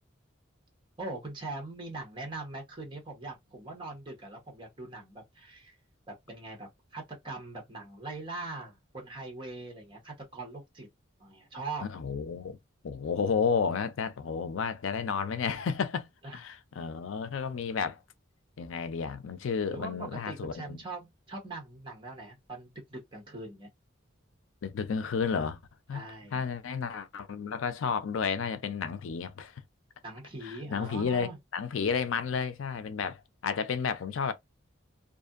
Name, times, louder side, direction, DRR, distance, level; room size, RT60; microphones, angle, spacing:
voice 1, 1.0-5.7 6.1-10.9 11.2-11.8 16.2-16.4 19.7-23.7 25.9-26.4 30.0-31.4, right 2 dB, 25° right, 1.0 m, -41 dB
voice 2, 11.8-12.6 12.8-18.0 18.6-20.8 24.6-25.6 25.9-26.0 26.3-29.5 30.4-34.3, left 6 dB, 75° left, 0.4 m, -32 dB
2.6 x 2.5 x 2.4 m
head